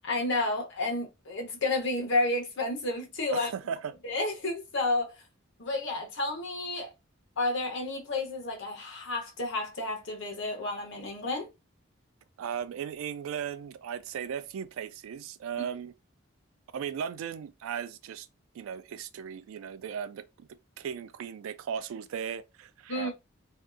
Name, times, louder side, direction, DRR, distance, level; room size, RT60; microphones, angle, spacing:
voice 1, 0.0-3.5 4.0-5.2 5.6-6.9 7.4-11.5 22.9-23.1, left 2 dB, 65° left, 0.8 m, -31 dB
voice 2, 3.3-3.9 12.4-15.9 16.7-18.3 18.5-20.5 20.8-23.1, right 7 dB, 90° right, 0.3 m, -37 dB
2.6 x 2.2 x 2.4 m
head